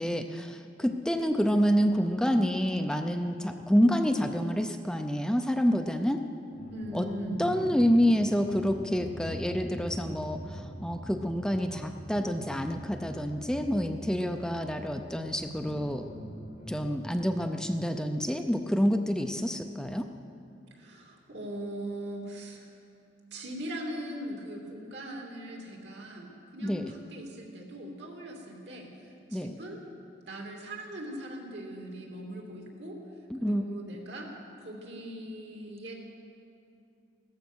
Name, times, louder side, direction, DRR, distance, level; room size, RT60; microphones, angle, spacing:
voice 1, 0.0-6.2 6.9-7.1 7.4-16.0 16.7-20.1 26.6-26.9 29.3-29.5 33.3-33.6, equal, 5° left, 5 dB, 0.5 m, -28 dB
sound 1, 6.5-17.4, equal, 45° left, 1.9 m, -43 dB
voice 2, 6.7-7.5 20.7-22.7 23.3-29.8 30.3-33.0 33.4-34.3 34.6-35.9, right 1 dB, 75° right, -1 dB, 2.9 m, -40 dB
16.0 x 14.0 x 6.3 m, 2.5 s
head